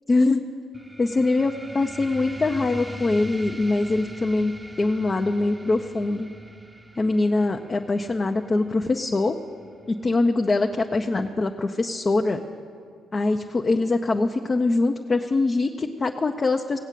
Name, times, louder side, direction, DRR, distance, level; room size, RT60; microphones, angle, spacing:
voice 1, 0.1-0.4 1.0-4.5 4.8-6.3 7.0-9.3 9.9-12.4 13.1-16.8, left 3 dB, 30° left, 3 dB, 0.7 m, -23 dB
sound 1, 0.7-11.8, right 1 dB, 15° right, 0.8 m, -42 dB
17.5 x 8.1 x 7.5 m, 2.3 s
cardioid pair, 90°, 0 cm